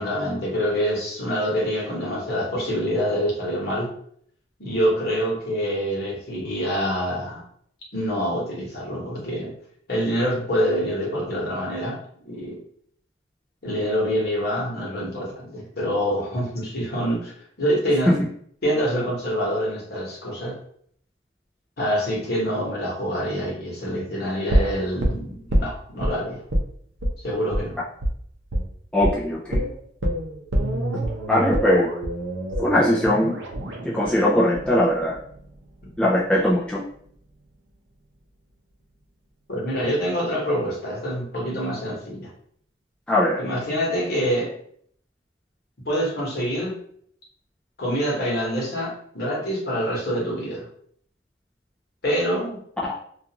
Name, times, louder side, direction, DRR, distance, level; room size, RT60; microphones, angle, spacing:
voice 1, 0.0-3.9 4.6-7.4 7.9-9.5 9.9-12.0 12.2-12.6 13.6-17.3 17.6-18.1 18.6-20.5 21.8-26.4 27.2-27.8 39.5-42.3 43.4-44.5 45.9-46.8 47.8-50.7 52.0-52.6, equal, 55° left, -4 dB, 1.0 m, -26 dB
sound 1, 24.5-26.1 26.5-26.7 27.0-27.1 27.5-27.6 28.0-28.1 28.5-28.7 29.0-29.1 29.5-35.5 35.8-35.9, right 1 dB, 75° right, 0.6 m, -26 dB
voice 2, 28.9-29.6 31.3-31.9 32.6-33.3 33.8-35.2 36.0-36.8 43.1-43.4 52.8-52.9, left 1 dB, 5° left, -6 dB, 0.3 m, -20 dB
2.4 x 2.4 x 2.8 m, 0.63 s
head